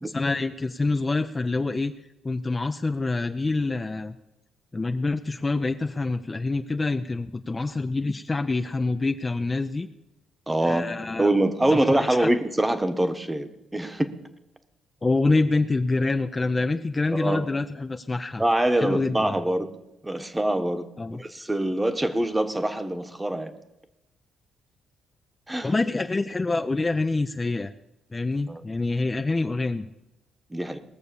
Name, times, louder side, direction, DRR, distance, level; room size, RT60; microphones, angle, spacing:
voice 1, 0.0-1.9 2.2-4.1 4.7-9.9 10.6-11.3 11.7-12.3 15.0-18.4 18.8-19.3 21.0-21.2 25.6-27.7 28.1-29.9, left 3 dB, 25° left, 8 dB, 0.5 m, -26 dB
voice 2, 10.5-10.8 11.2-14.1 17.1-17.5 18.4-19.7 20.0-20.9 21.1-23.5 25.5-25.7 28.5-28.6 30.5-30.8, right 1 dB, 10° right, 9 dB, 1.1 m, -24 dB
19.0 x 6.7 x 6.9 m, 0.94 s
cardioid pair, 90°, 0 cm